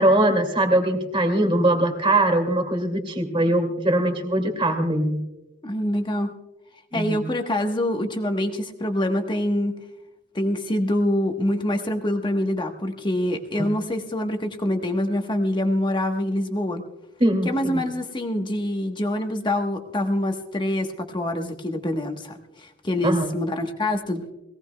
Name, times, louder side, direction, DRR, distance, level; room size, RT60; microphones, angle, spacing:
voice 1, 0.0-5.2 6.9-7.2 17.2-17.8 23.0-23.3, right 1 dB, 25° right, 6 dB, 2.2 m, -21 dB
voice 2, 5.6-6.3 6.9-9.7 10.3-16.8 17.4-24.3, left 1 dB, 20° left, 4 dB, 1.1 m, -25 dB
21.5 x 17.5 x 2.2 m, 0.96 s
head